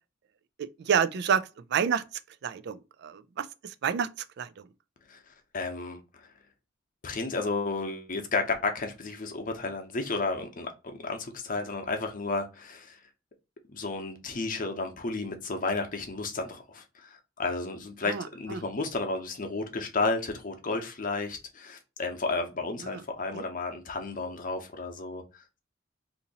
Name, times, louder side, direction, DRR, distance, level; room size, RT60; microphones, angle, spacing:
voice 1, 0.6-1.4 1.7-2.0 2.4-4.1 4.4-4.5 18.1-18.2 18.5-18.6 22.8-23.0 23.3-23.4, right 7 dB, 60° right, 0.4 m, -28 dB
voice 2, 5.5-6.3 7.0-13.0 13.7-25.2, left 3 dB, 45° left, 0.8 m, -32 dB
2.8 x 2.6 x 3.9 m
head